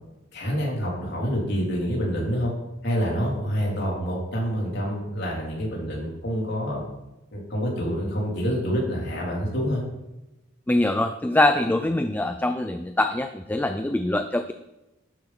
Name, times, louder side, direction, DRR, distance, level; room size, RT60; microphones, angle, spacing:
voice 1, 0.3-2.5 2.8-6.8 7.3-9.8, equal, 60° left, -3 dB, 3.8 m, -27 dB
voice 2, 10.7-14.5, left 1 dB, 10° left, 8 dB, 0.4 m, -23 dB
12.0 x 8.8 x 4.4 m, 0.99 s
head